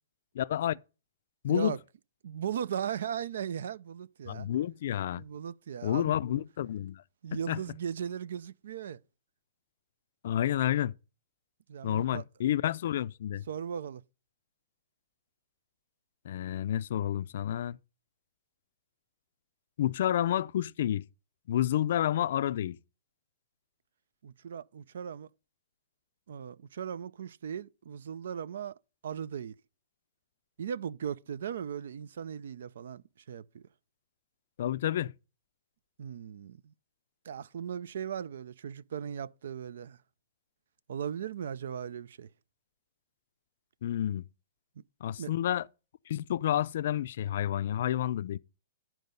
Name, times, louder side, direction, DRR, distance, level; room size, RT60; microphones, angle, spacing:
voice 1, 0.3-0.8 1.4-1.8 4.3-5.2 5.8-7.0 7.3-7.6 10.2-10.9 11.8-13.4 16.3-17.8 19.8-21.0 21.5-22.8 34.6-35.1 43.8-44.2 45.0-45.7 46.1-48.4, left 11 dB, 65° left, 0.3 m, -30 dB
voice 2, 1.5-1.8 2.2-4.5 5.1-6.2 7.2-9.0 11.7-12.2 13.5-14.0 24.2-25.3 26.3-28.8 29.0-29.6 30.6-33.6 36.0-36.7 37.3-40.0 40.9-42.3 45.2-45.3, right 8 dB, 75° right, 0.4 m, -37 dB
11.0 x 4.5 x 5.3 m
hypercardioid pair, 150°, 0 cm